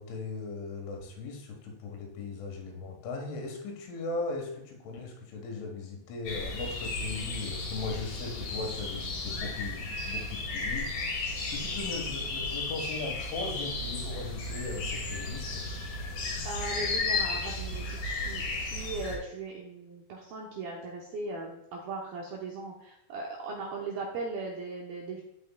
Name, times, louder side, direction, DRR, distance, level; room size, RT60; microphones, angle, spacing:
voice 1, 0.0-15.6, left 3 dB, 75° left, 1 dB, 3.9 m, -38 dB
sound 1, 6.3-19.2, left 3 dB, 60° left, 2.4 m, -34 dB
voice 2, 16.5-25.2, right 3 dB, 80° right, -2 dB, 2.2 m, -38 dB
14.5 x 5.4 x 2.3 m, 0.83 s
omnidirectional pair, 5.6 m